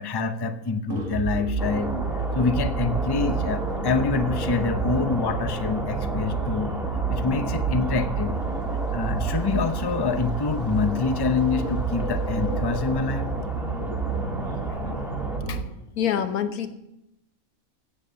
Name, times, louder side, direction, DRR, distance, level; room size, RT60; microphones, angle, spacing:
voice 1, 0.0-1.9 2.3-6.7 7.1-8.4 8.9-13.3 14.6-14.9 15.5-15.6, left 4 dB, 25° left, 9 dB, 0.5 m, -26 dB
sound 1, 0.9-15.6, right 5 dB, 65° right, 2.1 m, -29 dB
sound 2, 1.6-15.4, equal, ahead, 1.6 m, -34 dB
voice 2, 16.0-16.7, left 8 dB, 85° left, 10 dB, 1.5 m, -27 dB
16.0 x 7.5 x 6.8 m, 0.86 s
omnidirectional pair, 1.5 m